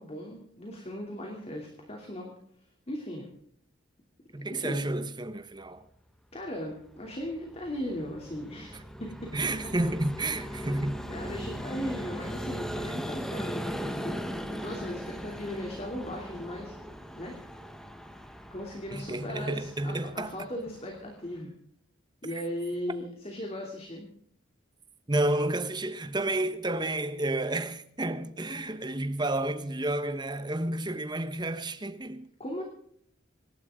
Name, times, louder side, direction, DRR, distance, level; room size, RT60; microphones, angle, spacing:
voice 1, 0.0-2.3 2.9-3.3 4.4-4.8 6.3-9.3 11.1-16.8 17.2-17.4 18.5-21.5 22.2-24.1 32.4-32.6, equal, 30° left, 3.0 m, -38 dB
voice 2, 4.3-5.8 9.3-11.0 18.9-20.5 22.2-22.3 25.1-32.3, right 1 dB, 20° right, 1.2 m, -31 dB
Vehicle, 6.7-21.4, equal, ahead, 1.2 m, -39 dB
26.0 x 12.0 x 3.8 m
head